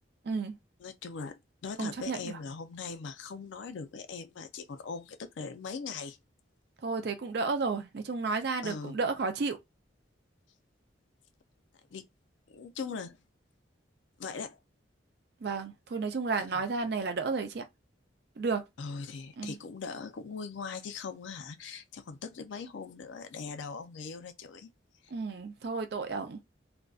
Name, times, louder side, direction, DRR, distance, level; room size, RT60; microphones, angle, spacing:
voice 1, 0.8-1.4 1.6-6.2 8.6-9.0 11.9-12.0 12.5-13.2 14.2-14.6 16.3-16.6 18.8-24.7 25.0-25.1, left 5 dB, 70° left, 0.4 m, -40 dB
voice 2, 1.8-2.4 6.8-9.6 15.4-17.6 18.4-18.6 19.4-19.6 25.1-26.4, right 4 dB, 55° right, 0.4 m, -32 dB
2.5 x 2.1 x 2.3 m
head